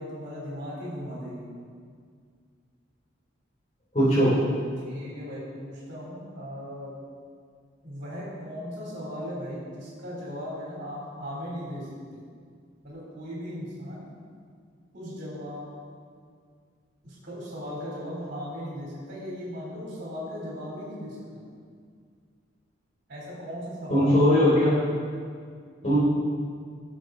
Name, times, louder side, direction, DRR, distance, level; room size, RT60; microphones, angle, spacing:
voice 1, 0.0-1.5 4.8-6.9 7.8-12.2 12.8-14.0 14.9-15.6 17.0-21.4 23.1-24.2, equal, 55° right, -7 dB, 3.3 m, -37 dB
voice 2, 3.9-4.3 23.9-24.7 25.8-26.0, equal, 35° left, -11 dB, 3.4 m, -19 dB
17.5 x 7.1 x 4.0 m, 2.1 s
head